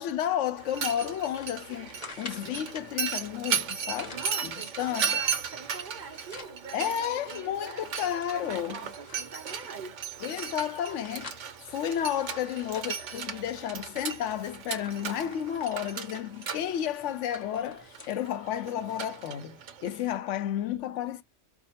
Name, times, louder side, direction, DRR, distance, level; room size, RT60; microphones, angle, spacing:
voice 1, 0.0-5.2 6.7-8.9 10.2-21.2, left 10 dB, 80° left, 0.9 m, -32 dB
Mechanisms, 0.6-20.2, right 7 dB, 80° right, 1.1 m, -36 dB
sound 1, 0.8-2.9 3.7-4.4 4.8-6.6 7.0-7.1 7.4-9.4 10.0-13.7 14.1-14.3 14.6-18.2 18.6-18.7 19.6-19.7, left 4 dB, 35° left, 0.9 m, -49 dB
voice 2, 4.1-9.9, right 4 dB, 45° right, 0.9 m, -44 dB
4.8 x 2.0 x 2.9 m
omnidirectional pair, 1.2 m